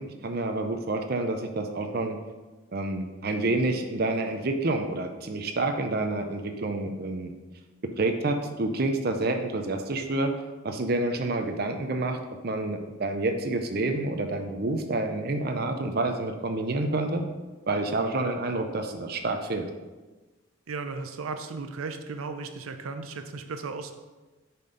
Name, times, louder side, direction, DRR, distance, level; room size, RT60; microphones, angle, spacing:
voice 1, 0.0-2.2 2.7-7.3 8.0-10.3 10.6-12.2 12.4-17.3 17.7-19.7, right 2 dB, 45° right, 5 dB, 0.6 m, -28 dB
voice 2, 20.7-24.0, right 4 dB, 90° right, 8 dB, 0.5 m, -35 dB
6.8 x 4.3 x 5.1 m, 1.2 s
head